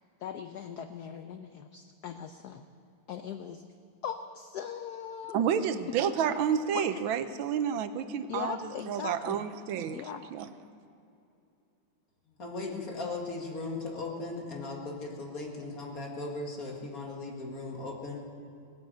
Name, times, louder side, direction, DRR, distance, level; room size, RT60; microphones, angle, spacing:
voice 1, 0.2-2.6 3.1-3.6 4.0-5.4 6.1-6.2 6.7-7.0 8.3-9.5 9.9-10.2, left 8 dB, 70° left, 8 dB, 1.0 m, -39 dB
voice 2, 5.3-8.6 8.9-10.0 10.3-10.5, right 8 dB, 75° right, 11 dB, 1.4 m, -30 dB
voice 3, 12.4-18.2, left 3 dB, 45° left, -1 dB, 2.4 m, -37 dB
18.5 x 9.9 x 7.9 m, 2.7 s
omnidirectional pair, 2.2 m